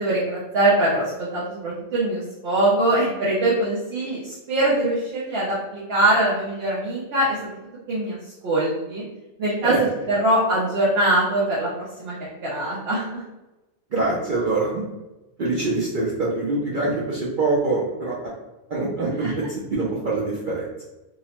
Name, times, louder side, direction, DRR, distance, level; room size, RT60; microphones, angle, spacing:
voice 1, 0.0-7.6 7.9-8.2 8.4-9.0 9.4-9.7 10.1-11.7 12.0-12.2 12.4-13.2 19.2-19.3, right 1 dB, 55° right, -7 dB, 0.8 m, -22 dB
voice 2, 13.9-14.8 15.4-18.3 18.7-20.7, right 2 dB, 80° right, -5 dB, 0.4 m, -24 dB
2.8 x 2.0 x 2.9 m, 1.0 s
omnidirectional pair, 1.5 m